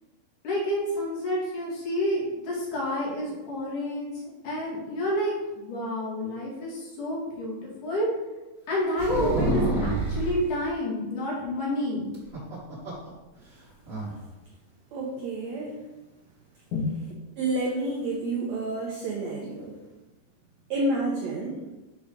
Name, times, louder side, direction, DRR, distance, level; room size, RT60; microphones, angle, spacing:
voice 1, 0.4-4.1 4.4-8.1 8.7-12.0 16.7-16.9, left 1 dB, 60° left, -4 dB, 3.3 m, -29 dB
sound 1, 9.0-10.4 12.1-13.1 13.4-13.5 13.9-14.1, right 1 dB, 25° right, 1.4 m, -27 dB
voice 2, 14.9-15.7 17.4-19.8 20.7-21.6, right 2 dB, 80° right, -1 dB, 1.6 m, -29 dB
6.9 x 4.9 x 5.2 m, 1.1 s
omnidirectional pair, 4.2 m